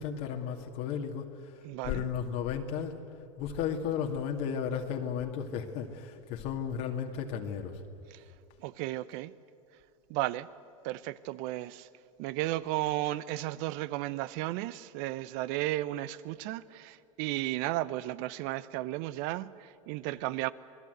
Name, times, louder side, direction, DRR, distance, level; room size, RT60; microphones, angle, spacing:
voice 1, 0.0-1.5 1.8-3.0 3.4-7.8, left 7 dB, 60° left, 2.3 m, -34 dB
voice 2, 1.6-2.1 8.1-8.2 8.6-9.3 10.1-10.5 10.8-11.9 12.2-20.5, right 16 dB, 60° right, 0.9 m, -34 dB
27.0 x 19.0 x 8.1 m
hypercardioid pair, 105°, 17 cm